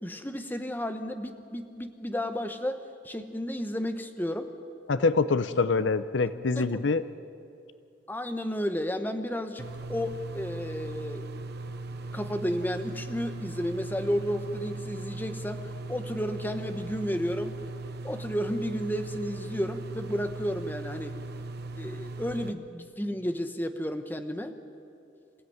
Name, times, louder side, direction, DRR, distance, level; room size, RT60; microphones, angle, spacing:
voice 1, 0.0-4.5 6.6-6.8 8.1-11.3 12.1-15.6 15.9-17.6 18.0-21.2 21.8-24.5, equal, 10° left, 8 dB, 1.1 m, -32 dB
voice 2, 4.9-7.0, left 4 dB, 70° left, 14 dB, 0.7 m, -25 dB
sound 1, 9.6-22.5, right 2 dB, 55° right, 1.0 m, -39 dB
27.0 x 16.0 x 9.4 m, 2.7 s
head